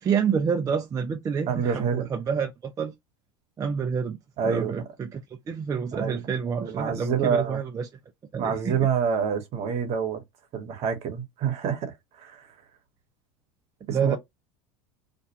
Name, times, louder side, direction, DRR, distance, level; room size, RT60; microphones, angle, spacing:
voice 1, 0.0-2.9 3.6-4.2 4.4-7.9 8.3-8.8 13.9-14.2, right 6 dB, 25° right, 0.4 m, -28 dB
voice 2, 1.5-2.1 4.4-4.8 5.9-6.2 6.6-7.6 8.4-10.2 10.5-12.5 13.9-14.2, right 7 dB, 50° right, 1.0 m, -27 dB
2.4 x 2.1 x 2.8 m
supercardioid pair, 105°, 15 cm